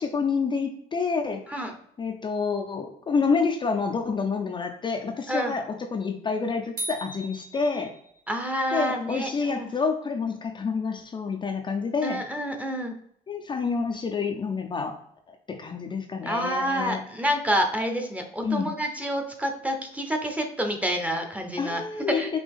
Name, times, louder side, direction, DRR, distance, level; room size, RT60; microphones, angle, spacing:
voice 1, 0.0-1.6 2.0-7.9 8.7-12.2 13.3-15.0 15.3-17.0 18.4-18.7 21.6-22.4, left 5 dB, 25° left, 3 dB, 0.5 m, -28 dB
sound 1, 6.8-8.4, right 1 dB, 55° right, 1.9 m, -37 dB
voice 2, 8.3-9.7 12.0-12.9 16.3-21.8 22.1-22.3, equal, 10° right, 4 dB, 0.8 m, -28 dB
5.2 x 2.8 x 3.5 m, 0.68 s
cardioid pair, 110°, 17 cm